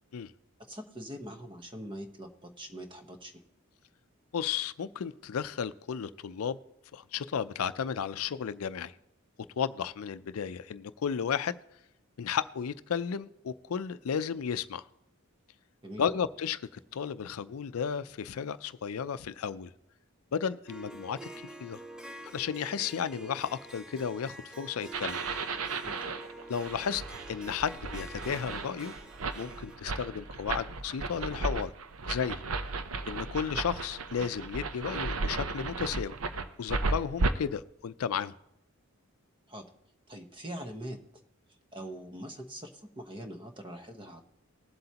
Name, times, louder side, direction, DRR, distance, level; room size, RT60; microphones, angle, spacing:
voice 1, 0.7-3.4 15.8-16.2 25.8-26.1 39.5-39.6 40.1-41.0 41.7-44.2, right 1 dB, 25° right, 5 dB, 1.0 m, -43 dB
voice 2, 4.3-6.6 6.9-8.9 9.6-11.6 12.2-14.8 16.0-19.7 20.3-21.8 22.3-25.2 26.5-27.0 27.3-28.9 29.4-31.7 32.1-32.4 33.1-36.2 36.6-38.3, left 7 dB, 85° left, 14 dB, 0.4 m, -33 dB
Harp, 20.7-29.8, right 1 dB, 5° right, 0.6 m, -47 dB
sound 1, 24.9-37.3, right 3 dB, 75° right, 0.7 m, -35 dB
20.0 x 7.8 x 2.9 m, 0.83 s
head